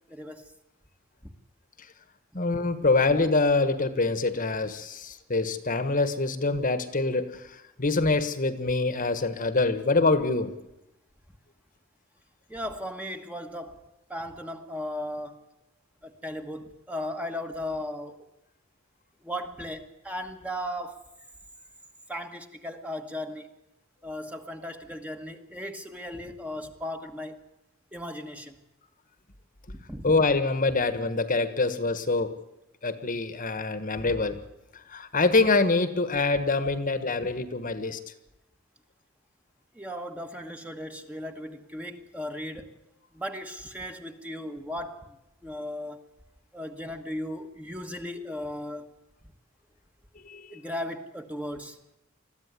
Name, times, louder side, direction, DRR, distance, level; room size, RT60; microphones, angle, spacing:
voice 1, 0.1-0.5 12.5-13.8 14.1-15.4 16.0-18.2 19.2-21.0 22.1-23.5 24.0-27.4 27.9-28.6 29.9-30.1 34.0-34.2 37.2-37.3 39.7-42.7 43.1-45.1 45.4-46.0 46.5-48.9 50.5-51.8, left 1 dB, 5° right, 5 dB, 1.4 m, -36 dB
voice 2, 2.3-10.5 30.0-32.4 32.8-34.4 34.9-38.0 50.2-50.6, left 3 dB, 40° left, 11 dB, 1.4 m, -25 dB
21.5 x 14.5 x 9.7 m, 0.91 s
head